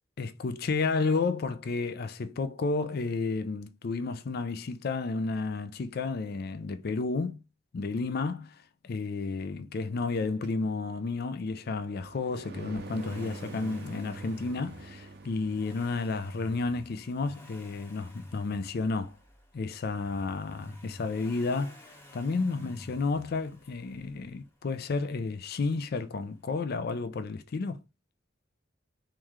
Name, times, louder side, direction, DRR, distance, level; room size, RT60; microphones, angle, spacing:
voice 1, 0.2-7.4 7.7-8.6 8.8-19.1 19.5-27.8, left 3 dB, 55° left, 0.4 m, -32 dB
sound 1, 10.4-16.0, right 2 dB, 55° right, 0.5 m, -45 dB
Accelerating revving vroom, 12.5-24.4 25.7-25.8, equal, 15° left, 1.0 m, -51 dB
3.2 x 3.1 x 3.6 m
head